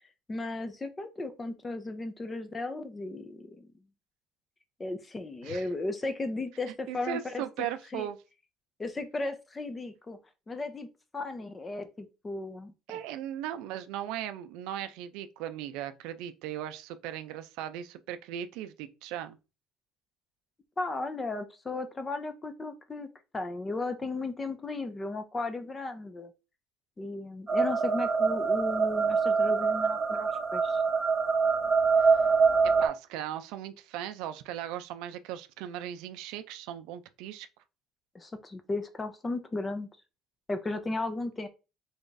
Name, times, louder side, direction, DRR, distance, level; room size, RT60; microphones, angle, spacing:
voice 1, 0.3-3.7 4.8-7.7 7.9-8.1 8.8-10.2 10.5-10.9 11.1-12.7 20.8-26.3 27.0-30.8 38.1-39.9 40.5-41.5, left 2 dB, 15° left, 0.5 m, -35 dB
voice 2, 6.9-8.2 12.9-19.4 32.0-32.2 32.8-37.5, right 11 dB, 75° right, 0.4 m, -38 dB
sound 1, 27.5-32.9, right 5 dB, 20° right, 0.8 m, -25 dB
3.4 x 2.6 x 3.8 m
cardioid pair, 155°, 0 cm